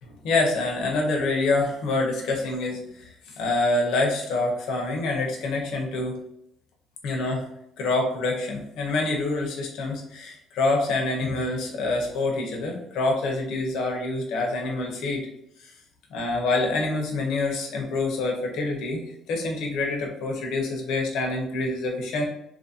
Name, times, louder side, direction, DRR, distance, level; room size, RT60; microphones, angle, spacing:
voice 1, 0.0-6.2 7.0-7.5 7.8-15.3 15.6-15.7 16.1-19.0 19.3-22.3, left 2 dB, 75° left, 1 dB, 0.8 m, -26 dB
2.9 x 2.6 x 2.7 m, 0.77 s
cardioid pair, 100°, 0 cm